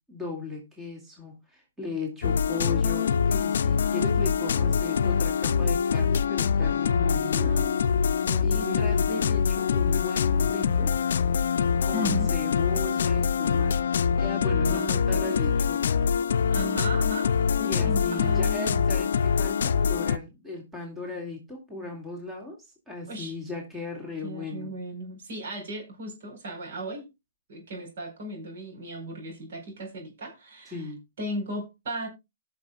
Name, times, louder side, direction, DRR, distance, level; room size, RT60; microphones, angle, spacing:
voice 1, 0.1-7.6 8.4-11.0 11.8-13.8 14.2-16.0 17.6-24.7 30.7-31.0, left 3 dB, 10° right, 2.4 m, -37 dB
sound 1, 2.2-20.2, left 6 dB, 75° left, 0.5 m, -24 dB
voice 2, 7.3-7.8 8.2-8.9 11.9-12.3 14.4-15.3 16.5-19.1 23.1-23.3 24.2-27.1 27.5-30.8 31.2-32.1, right 1 dB, 65° right, 4.6 m, -36 dB
18.5 x 6.4 x 2.4 m
hypercardioid pair, 150°, 0 cm